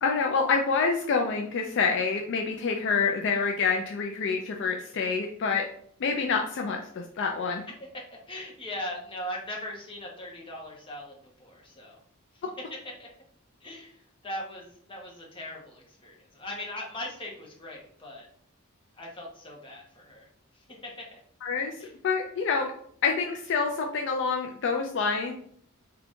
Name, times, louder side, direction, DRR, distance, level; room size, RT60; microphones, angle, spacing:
voice 1, 0.0-5.6 6.0-7.6 12.4-12.5 21.4-22.7 23.0-25.3, left 5 dB, 55° left, 2 dB, 0.4 m, -27 dB
voice 2, 7.8-12.0 12.3-12.4 12.7-13.1 13.6-18.3 18.9-20.3 20.5-21.2 21.8-21.9, left 1 dB, 25° left, -2 dB, 0.8 m, -40 dB
3.8 x 2.3 x 3.5 m, 0.63 s
head